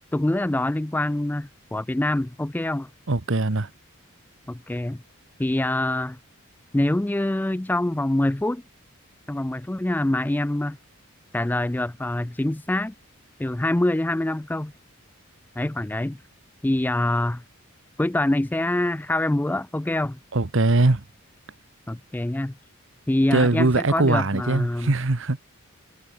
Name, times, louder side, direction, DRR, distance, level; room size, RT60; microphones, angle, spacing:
voice 1, 0.1-2.9 4.5-5.0 5.4-6.2 6.7-8.6 9.3-10.8 11.3-12.9 13.4-14.7 15.6-16.2 16.6-17.4 18.0-20.2 21.9-22.5 23.1-24.9, left 1 dB, 10° left, 0.3 m, -25 dB
voice 2, 3.1-3.7 20.3-21.0 23.3-25.4, right 2 dB, 60° right, 1.1 m, -21 dB
head